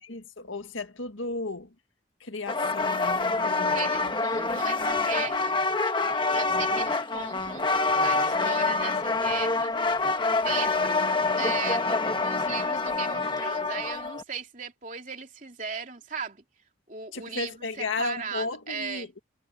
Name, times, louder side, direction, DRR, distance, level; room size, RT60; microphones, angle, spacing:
voice 1, 0.0-1.7 2.2-4.5 17.1-19.2, left 3 dB, 85° left, 1.9 m, -35 dB
sound 1, 2.5-14.2, left 3 dB, 25° left, 1.4 m, -26 dB
voice 2, 3.6-5.6 6.3-9.7 10.3-16.4 16.9-19.1, right 6 dB, 40° right, 3.2 m, -37 dB
head